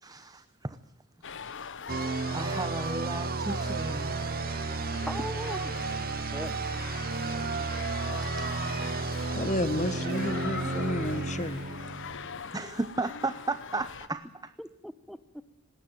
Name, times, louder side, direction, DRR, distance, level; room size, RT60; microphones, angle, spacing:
voice 1, 0.0-0.8 1.6-1.7 2.3-4.2 4.6-5.0 8.2-8.6 12.5-14.2, right 2 dB, 20° right, 13 dB, 0.8 m, -35 dB
sound 1, 1.2-14.1, left 6 dB, 60° left, 1.2 m, -41 dB
sound 2, 1.9-12.5, right 4 dB, 45° right, 0.8 m, -33 dB
voice 2, 5.1-5.8 6.3-6.6 14.6-15.4, equal, ahead, 14 dB, 1.1 m, -40 dB
voice 3, 9.0-11.6, left 1 dB, 35° left, 14 dB, 1.6 m, -31 dB
20.0 x 18.0 x 9.2 m, 0.80 s
head